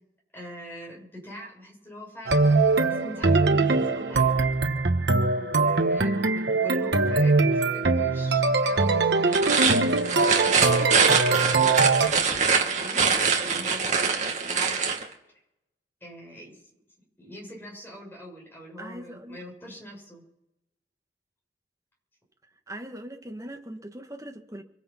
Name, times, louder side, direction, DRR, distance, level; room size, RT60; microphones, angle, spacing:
voice 1, 0.3-4.5 5.4-9.5 10.2-11.1 11.5-13.0 13.4-14.2 14.4-14.9 16.0-16.6 17.2-20.2, equal, 10° left, 7.3 m, -43 dB
sound 1, 2.3-12.1, right 3 dB, 65° right, 1.1 m, -22 dB
sound 2, 9.2-15.0, right 5 dB, 40° right, 1.9 m, -24 dB
voice 2, 18.8-19.4 22.7-24.6, right 1 dB, 20° right, 1.7 m, -40 dB
24.5 x 9.6 x 5.9 m
head